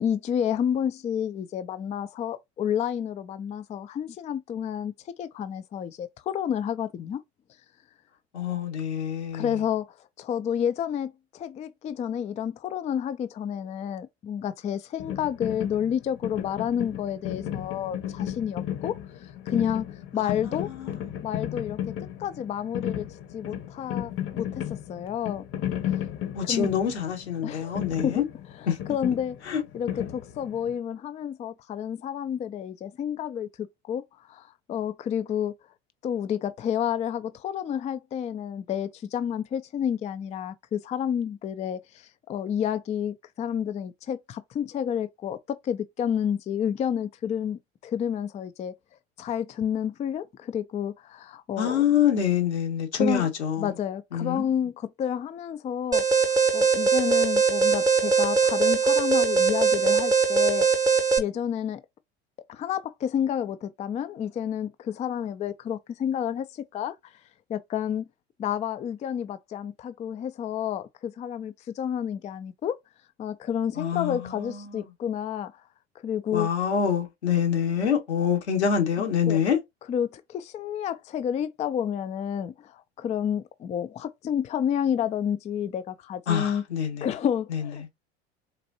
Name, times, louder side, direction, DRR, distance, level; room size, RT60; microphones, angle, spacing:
voice 1, 0.0-7.2 9.3-18.9 19.2-20.7 21.2-21.8 22.2-23.1 23.3-25.4 26.4-26.7 27.4-28.2 28.9-29.4 29.7-35.5 36.0-48.7 49.2-51.8 52.9-53.3 53.6-56.0 56.3-60.7 61.2-61.8 62.5-67.1 67.5-68.1 68.4-72.8 73.2-75.5 76.0-76.5 79.3-79.4 79.9-86.6 87.0-87.9, left 9 dB, 20° left, 0.4 m, -30 dB
voice 2, 8.3-9.5 20.4-21.0 26.3-28.2 28.7-28.8 29.5-29.6 51.6-53.7 54.1-54.5 73.8-74.8 76.3-79.6 86.3-87.1 87.5-87.6, left 8 dB, 90° left, 1.4 m, -26 dB
sound 1, 15.0-30.7, left 11 dB, 40° left, 0.9 m, -34 dB
Alarm, 55.9-61.2, right 5 dB, 10° right, 0.8 m, -21 dB
4.1 x 2.5 x 2.7 m
hypercardioid pair, 85°, 33 cm